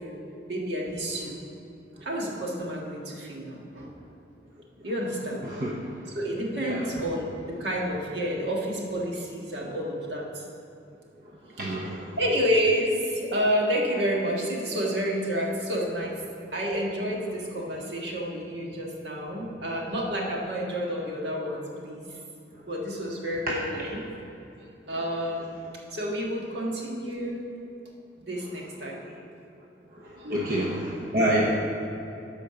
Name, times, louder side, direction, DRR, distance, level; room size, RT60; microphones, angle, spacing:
voice 1, 0.0-1.3 2.0-3.9 4.8-5.7 6.1-10.4 11.7-16.2 16.5-22.1 22.6-24.0 24.6-25.6 25.9-27.4 28.3-29.0 30.1-30.6, equal, 75° right, -2 dB, 1.7 m, -30 dB
voice 2, 11.6-12.1 30.3-31.7, equal, 55° right, -3 dB, 0.9 m, -27 dB
10.5 x 5.1 x 6.8 m, 2.9 s
head